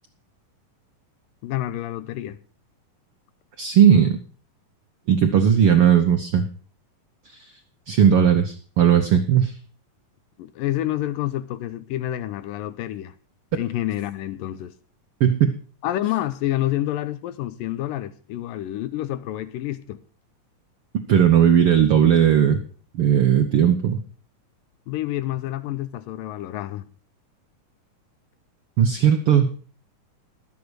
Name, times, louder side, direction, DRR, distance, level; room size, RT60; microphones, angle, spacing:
voice 1, 1.4-2.4 10.4-13.1 13.5-14.7 15.8-20.0 24.9-26.9, left 14 dB, 90° left, 2.5 m, -28 dB
voice 2, 3.6-4.2 5.1-6.4 7.9-9.5 15.2-15.6 21.1-22.6 22.9-24.0 28.8-29.5, right 8 dB, 80° right, 1.2 m, -17 dB
12.0 x 8.4 x 6.3 m
omnidirectional pair, 3.9 m